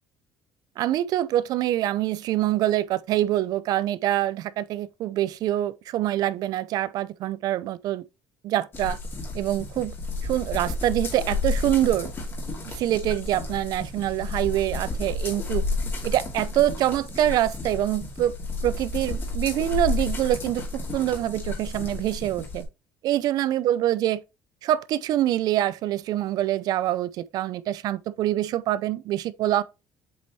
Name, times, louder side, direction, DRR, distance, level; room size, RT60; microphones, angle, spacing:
voice 1, 0.8-8.0 8.4-9.0 9.3-10.0 10.2-12.1 12.7-15.6 16.0-18.3 18.6-20.6 20.9-22.6 23.0-24.2 24.6-29.6, right 13 dB, 60° right, 0.4 m, -25 dB
sound 1, 8.7-22.6, left 3 dB, 30° left, 2.4 m, -31 dB
7.7 x 4.1 x 3.1 m
cardioid pair, 130°, 8 cm